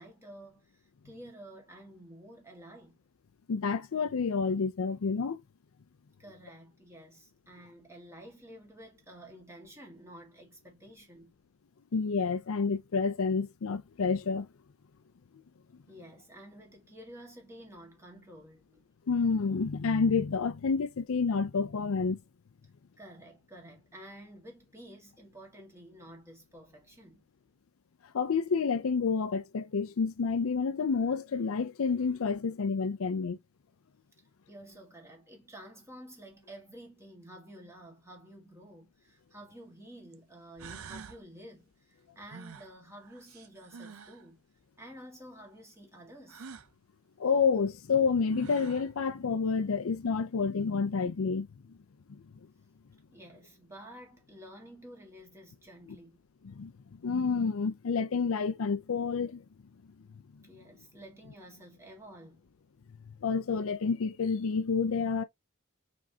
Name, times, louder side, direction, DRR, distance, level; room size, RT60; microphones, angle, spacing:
voice 1, 0.0-3.0 6.2-11.3 15.9-18.8 23.0-27.2 34.5-44.4 44.8-46.5 53.1-56.2 60.4-62.5, right 1 dB, 15° right, 1.7 m, -51 dB
voice 2, 3.5-5.4 11.9-14.5 19.1-22.2 28.1-33.4 47.2-51.5 56.4-56.7 57.0-59.4 63.2-65.2, left 5 dB, 80° left, 0.5 m, -29 dB
sound 1, 39.1-39.2 40.1-40.2 40.6-41.2 42.3-44.2 46.3-46.7 47.9-48.0 48.3-48.9, right 5 dB, 80° right, 0.6 m, -47 dB
4.9 x 3.6 x 2.7 m
head